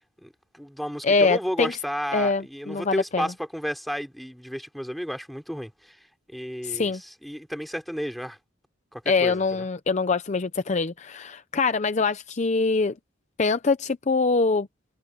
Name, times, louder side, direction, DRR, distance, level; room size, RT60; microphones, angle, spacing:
voice 1, 0.2-6.0 6.3-8.4 8.9-9.6, equal, ahead, 3.1 m, -32 dB
voice 2, 1.0-1.7 2.1-3.3 6.6-7.0 9.1-12.9 13.4-14.7, left 4 dB, 35° left, 0.6 m, -24 dB
head